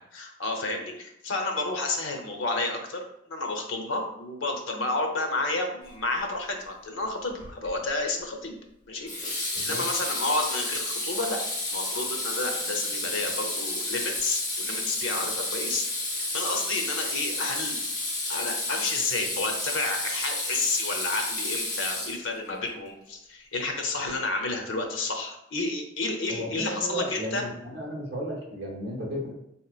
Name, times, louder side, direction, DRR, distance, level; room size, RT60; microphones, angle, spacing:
voice 1, 0.0-3.0 3.3-8.6 8.9-11.4 11.7-15.8 16.3-17.8 18.3-27.4, left 2 dB, 80° left, 3 dB, 0.7 m, -31 dB
Water tap faucet / Sink (filling or washing), 7.4-7.8 9.1-22.5, left 2 dB, 20° left, 0.8 m, -31 dB
voice 2, 26.3-29.3, equal, 55° right, -3 dB, 1.0 m, -34 dB
3.6 x 2.9 x 2.4 m, 0.78 s
head